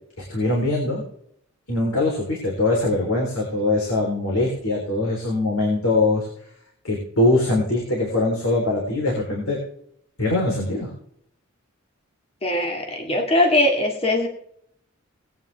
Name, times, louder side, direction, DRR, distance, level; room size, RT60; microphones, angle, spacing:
voice 1, 0.3-1.0 1.7-6.3 6.8-9.6 10.2-10.9, left 2 dB, 70° left, -2 dB, 3.7 m, -22 dB
voice 2, 12.4-14.3, left 1 dB, 30° left, 1 dB, 1.9 m, -21 dB
19.5 x 9.4 x 3.5 m, 0.70 s
head